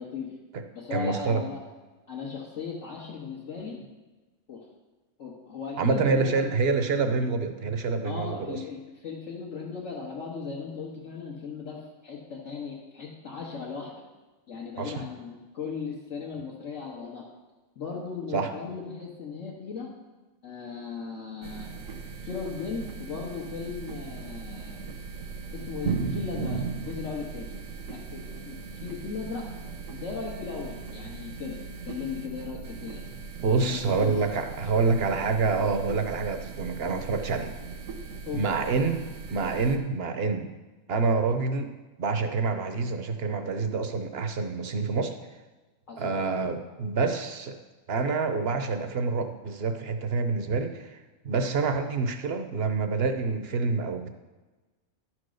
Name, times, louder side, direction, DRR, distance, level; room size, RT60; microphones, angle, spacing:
voice 1, 0.0-0.4 0.7-1.6 2.1-3.8 4.5-4.6 5.2-6.5 8.0-14.0 14.5-17.2 17.7-19.9 20.4-21.7 22.2-24.9 25.5-27.5 27.9-29.5 30.0-31.6 31.8-33.0 33.6-34.1 38.2-38.4 45.9-46.1, left 5 dB, 65° left, -6 dB, 1.7 m, -37 dB
voice 2, 0.9-1.4 5.8-8.6 14.8-15.0 18.3-18.5 33.4-37.5 38.3-39.0 39.3-40.5 40.9-41.7 42.0-45.2 46.0-47.6 47.9-51.0 51.2-54.1, right 4 dB, 55° right, 7 dB, 0.9 m, -27 dB
sound 1, 21.4-39.8, right 5 dB, 75° right, 1.4 m, -38 dB
11.5 x 4.5 x 6.4 m, 1.2 s
omnidirectional pair, 1.4 m